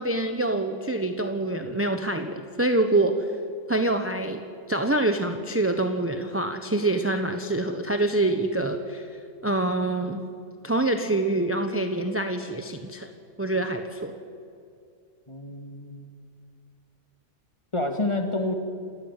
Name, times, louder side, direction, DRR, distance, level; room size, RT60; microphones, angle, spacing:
voice 1, 0.0-3.3 3.7-4.4 4.7-9.1 9.4-10.2 10.6-13.1 13.4-14.1, right 2 dB, 10° right, 6 dB, 1.0 m, -25 dB
voice 2, 15.3-16.1 17.7-18.5, left 2 dB, 25° left, 5 dB, 2.1 m, -28 dB
28.5 x 14.5 x 9.1 m, 2.4 s
omnidirectional pair, 1.3 m